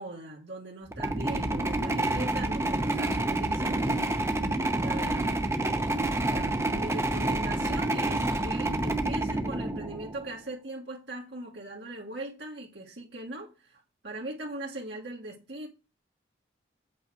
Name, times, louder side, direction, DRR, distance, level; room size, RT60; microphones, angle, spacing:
voice 1, 0.0-4.0 4.8-5.4 6.3-15.7, right 2 dB, 65° right, 1.6 m, -40 dB
sound 1, 0.9-10.3, right 2 dB, 15° right, 0.7 m, -28 dB
8.3 x 4.7 x 6.1 m
head